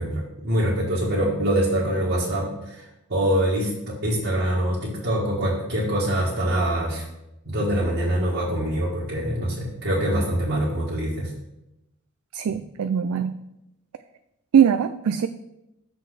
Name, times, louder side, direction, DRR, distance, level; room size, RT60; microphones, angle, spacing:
voice 1, 0.0-7.0 7.5-11.3, right 1 dB, 55° right, -7 dB, 1.7 m, -24 dB
voice 2, 12.3-13.4 14.5-15.3, right 8 dB, 80° right, 9 dB, 0.3 m, -21 dB
6.5 x 4.0 x 6.3 m, 0.90 s
head